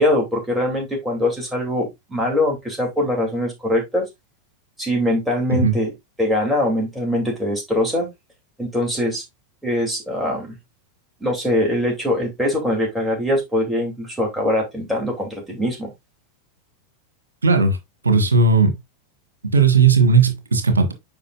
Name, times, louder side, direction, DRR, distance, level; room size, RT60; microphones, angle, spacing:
voice 1, 0.0-4.1 4.8-5.9 6.2-8.1 8.6-9.2 9.6-10.5 11.2-15.9, left 1 dB, 5° right, 2.8 m, -22 dB
voice 2, 17.4-17.8 18.0-18.8 19.5-20.9, right 4 dB, 75° right, 1.5 m, -16 dB
8.4 x 5.3 x 2.4 m
figure-of-eight pair, 90°, 0 cm